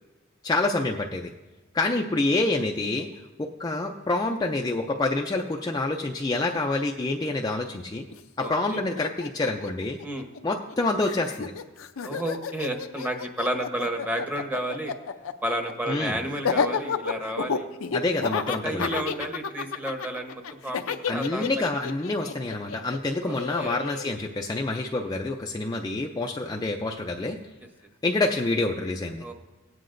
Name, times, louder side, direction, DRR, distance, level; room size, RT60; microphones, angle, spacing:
voice 1, 0.4-1.3 1.7-3.1 3.4-8.1 8.4-10.0 10.4-11.5 15.9-16.2 17.9-19.0 21.1-27.4 28.0-29.2, left 2 dB, 20° left, 2 dB, 0.4 m, -27 dB
Laughter, 8.1-8.2 8.4-10.7 11.0-24.1, left 6 dB, 85° left, 0.6 m, -31 dB
voice 2, 8.4-8.8 10.0-10.3 12.0-14.9 15.4-17.7 18.6-21.5 23.2-23.8 26.4-26.7 29.2-29.3, right 1 dB, 10° right, 4 dB, 0.9 m, -31 dB
17.0 x 9.3 x 2.5 m, 1.1 s
head